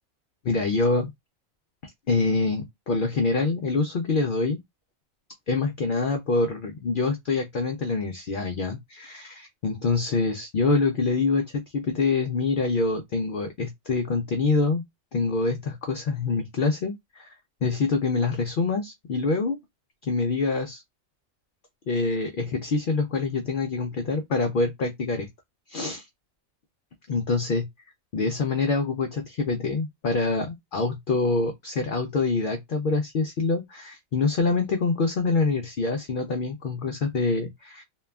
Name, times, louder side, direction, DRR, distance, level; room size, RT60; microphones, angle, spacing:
voice 1, 0.4-1.1 2.1-4.6 5.5-14.8 15.1-17.3 17.6-19.6 20.0-20.8 21.9-25.3 25.7-26.1 27.1-27.7 28.1-37.8, left 3 dB, 70° left, 0.5 m, -25 dB
2.8 x 2.3 x 2.2 m
omnidirectional pair, 1.4 m